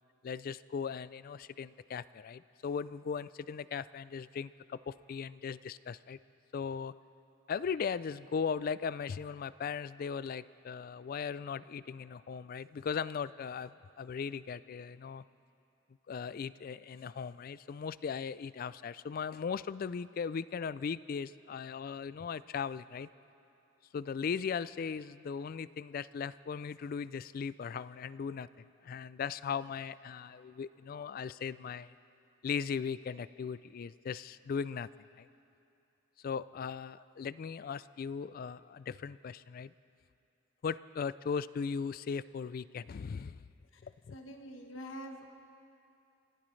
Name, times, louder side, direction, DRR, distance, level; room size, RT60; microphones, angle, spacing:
voice 1, 0.2-6.2 6.5-6.9 7.5-15.2 16.1-23.1 23.9-28.5 28.8-31.9 32.4-34.9 35.2-35.3 36.2-39.7 40.6-43.4 43.8-44.1, left 6 dB, 45° left, 17 dB, 0.3 m, -38 dB
voice 2, 44.1-45.3, equal, 70° left, 4 dB, 1.1 m, -45 dB
28.0 x 15.5 x 3.2 m, 2.6 s
head